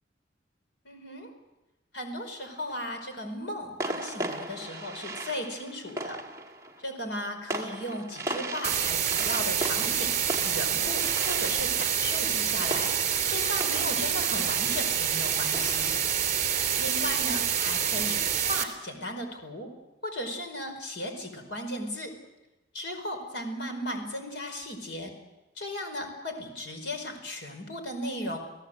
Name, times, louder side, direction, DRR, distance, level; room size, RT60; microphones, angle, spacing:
voice 1, 0.8-1.3 1.9-6.2 6.8-10.1 10.4-12.9 13.3-16.0 16.8-18.2 18.5-19.7 20.0-22.1 22.7-25.1 25.6-28.4, left 1 dB, 75° left, 5 dB, 5.1 m, -36 dB
sound 1, 2.3-2.9 3.8-17.2, right 1 dB, 15° right, 1.8 m, -38 dB
sound 2, 8.6-18.6, right 9 dB, 40° right, 3.3 m, -27 dB
30.0 x 17.5 x 8.1 m, 1.0 s
head